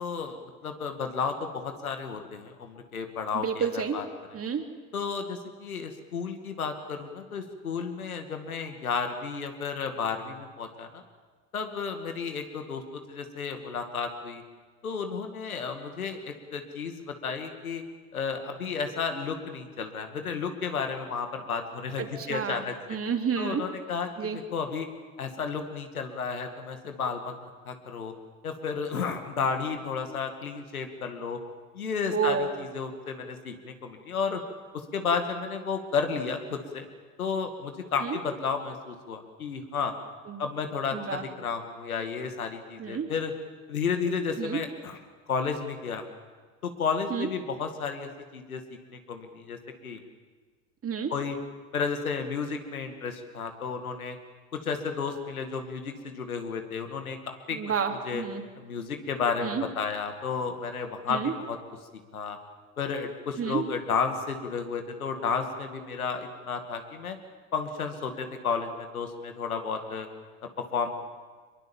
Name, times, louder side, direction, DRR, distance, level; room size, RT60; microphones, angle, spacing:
voice 1, 0.0-4.1 4.9-11.0 11.5-14.4 14.8-17.8 18.1-22.7 23.4-24.9 25.2-27.3 27.7-28.1 28.4-31.4 31.7-34.4 34.9-36.9 37.2-39.9 40.4-43.3 43.7-45.0 45.3-46.1 46.6-48.6 48.9-50.0 51.1-51.4 51.7-54.2 54.5-57.6 58.0-58.2 58.6-61.6 62.1-62.4 62.8-67.2 67.5-70.1 70.6-71.0, left 5 dB, 90° left, 6 dB, 2.3 m, -32 dB
voice 2, 3.3-4.0 4.3-4.7 22.0-23.7 24.2-24.4 32.1-32.5 38.0-38.2 40.3-40.4 40.9-41.2 42.8-43.1 44.4-44.6 47.1-47.3 50.8-51.1 57.5-58.4 59.4-59.6 61.1-61.3 63.4-63.7, right 6 dB, 30° right, 4 dB, 3.3 m, -30 dB
24.5 x 22.5 x 7.3 m, 1.5 s
hypercardioid pair, 70°, 42 cm